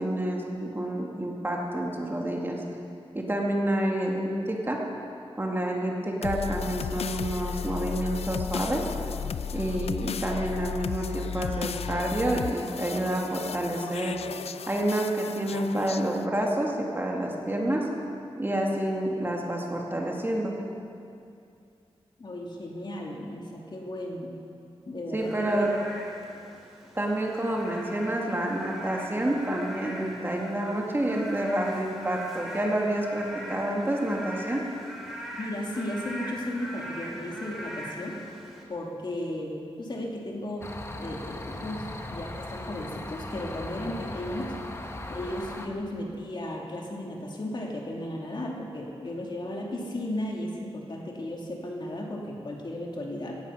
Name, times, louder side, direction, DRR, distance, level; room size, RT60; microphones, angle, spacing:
voice 1, 0.0-2.6 3.1-4.8 5.4-8.9 9.5-14.2 14.7-17.9 18.4-20.6 25.1-25.7 27.0-34.7, right 1 dB, 20° right, -1 dB, 2.2 m, -28 dB
sound 1, 6.2-16.2, left 7 dB, 85° left, 0.4 m, -34 dB
voice 2, 22.2-24.4 24.9-25.8 35.4-38.2 38.7-40.7 41.0-44.5 45.1-53.4, left 1 dB, 50° left, -1 dB, 2.5 m, -35 dB
Frog / Rain, 25.2-38.6, equal, ahead, 3.3 m, -41 dB
sound 2, 40.6-45.7, left 2 dB, 25° left, 1.1 m, -38 dB
17.0 x 15.0 x 5.7 m, 2.5 s
wide cardioid pair, 115°, 10 cm